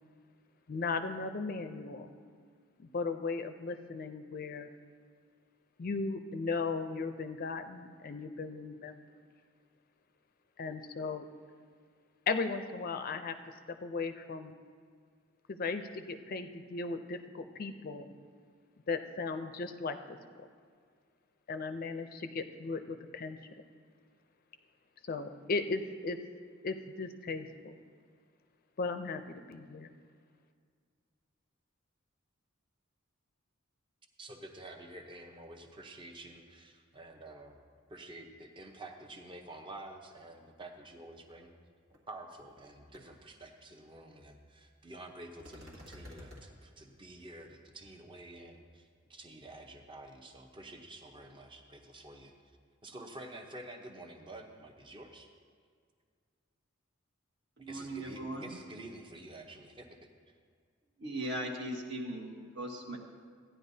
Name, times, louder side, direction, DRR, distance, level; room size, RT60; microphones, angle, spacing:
voice 1, 0.7-2.1 2.8-4.7 5.8-9.0 10.6-11.3 12.3-13.4 13.8-14.5 15.5-18.2 18.9-20.5 21.5-23.4 25.1-26.2 26.6-27.7 28.8-29.9, left 4 dB, 45° left, 8 dB, 0.5 m, -36 dB
voice 2, 34.2-37.5 37.9-41.5 42.1-52.3 52.8-55.3 57.7-60.0, right 1 dB, 25° right, 3 dB, 0.8 m, -49 dB
sound 1, 41.9-42.0 42.4-42.7 42.9-43.0 45.4-46.5, left 1 dB, 80° right, 1.8 m, -50 dB
voice 3, 57.6-58.5 61.0-63.0, right 1 dB, 55° right, 1 dB, 1.2 m, -38 dB
15.0 x 10.0 x 2.7 m, 2.1 s
head